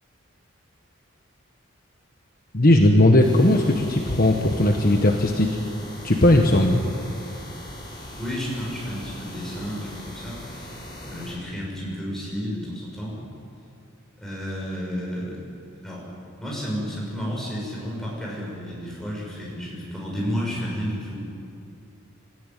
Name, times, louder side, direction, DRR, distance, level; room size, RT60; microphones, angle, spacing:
voice 1, 2.5-5.6 6.0-6.8, left 1 dB, 40° left, 2 dB, 1.3 m, -18 dB
sound 1, 3.2-11.3, left 1 dB, 20° left, 5.2 m, -40 dB
voice 2, 8.2-10.7 11.0-13.3 14.2-15.4 15.8-16.1 16.4-21.3, equal, ahead, -4 dB, 6.7 m, -31 dB
26.0 x 14.0 x 9.3 m, 2.5 s
head